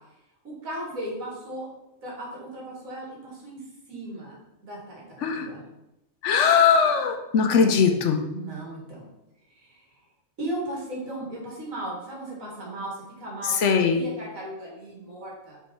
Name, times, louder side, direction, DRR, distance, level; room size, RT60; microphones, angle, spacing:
voice 1, 0.4-1.7 2.0-3.6 3.9-5.6 7.5-7.7 8.3-9.0 9.5-10.0 10.4-15.6, right 1 dB, 75° right, -3 dB, 2.4 m, -36 dB
voice 2, 6.2-8.2 13.4-14.0, left 6 dB, 65° left, 5 dB, 0.9 m, -20 dB
6.3 x 4.0 x 4.5 m, 0.92 s
omnidirectional pair, 1.4 m